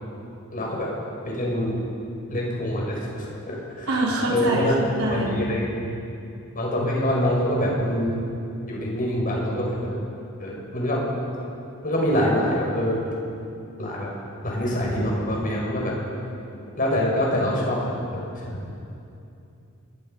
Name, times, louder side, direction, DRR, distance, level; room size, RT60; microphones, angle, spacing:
voice 1, 0.5-0.9 1.3-1.8 2.3-2.9 3.5-3.9 4.3-4.7 5.1-5.8 6.5-8.2 8.7-9.9 10.4-11.0 11.8-13.1 13.8-14.1 14.4-16.0 16.8-18.6, equal, 40° left, -3 dB, 6.1 m, -25 dB
voice 2, 3.9-5.3, right 1 dB, 80° right, -4 dB, 4.6 m, -25 dB
27.0 x 21.5 x 5.6 m, 2.7 s
head